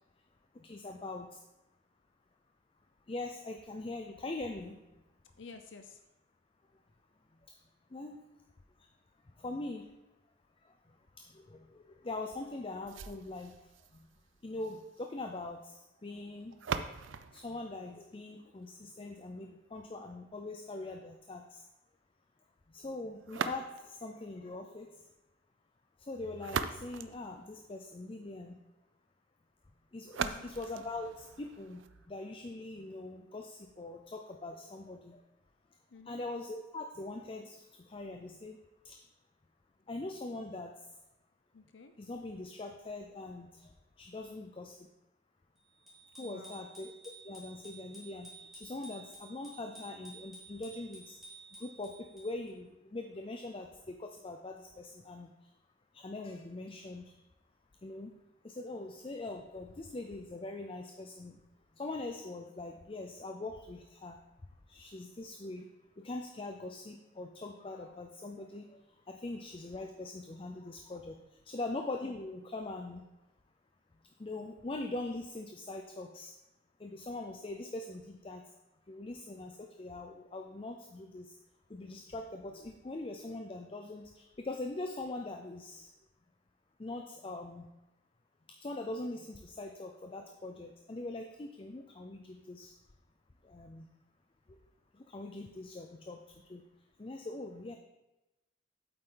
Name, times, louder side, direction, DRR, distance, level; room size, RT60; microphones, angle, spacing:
voice 1, 0.5-1.4 3.1-4.8 7.9-8.2 9.4-9.9 11.2-13.5 13.9-14.1 14.4-16.6 17.3-21.6 22.7-24.9 26.0-28.5 29.9-31.8 32.1-35.2 36.1-38.6 38.8-39.0 39.9-40.7 42.0-43.7 44.0-44.8 46.1-46.9 47.2-51.2 51.6-55.3 55.9-57.1 57.8-58.1 58.4-61.4 61.8-64.2 64.7-65.7 66.0-68.8 69.1-71.2 71.5-73.0 74.2-76.3 76.8-78.4 78.9-81.4 81.7-85.9 86.8-87.6 88.6-92.7 93.4-93.9 94.5-94.6 94.9-96.2 96.5-96.6 97.0-97.8, left 2 dB, 30° left, 5 dB, 0.5 m, -42 dB
voice 2, 5.4-6.0 30.1-30.5 35.9-36.2 41.5-41.9 46.2-46.6 67.6-68.0, left 4 dB, 70° left, 7 dB, 0.6 m, -52 dB
sound 1, 12.9-18.8 23.2-24.1 26.1-28.1 30.1-32.1, right 6 dB, 75° right, 0.5 m, -41 dB
Bicycle bell, 45.9-52.5, right 2 dB, ahead, 3.2 m, -53 dB
8.7 x 7.8 x 3.8 m, 1.0 s
head